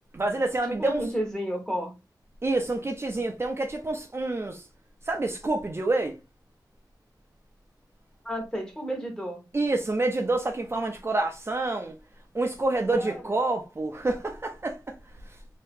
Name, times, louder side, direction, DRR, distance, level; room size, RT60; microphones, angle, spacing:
voice 1, 0.1-1.1 2.4-4.7 5.0-6.2 9.5-12.0 12.3-15.0 15.2-15.4, right 2 dB, 35° right, 0.5 m, -28 dB
voice 2, 0.7-1.9 8.2-9.4 13.0-13.1, equal, 10° left, 1.2 m, -32 dB
2.8 x 2.7 x 3.5 m
wide cardioid pair, 70°, 7 cm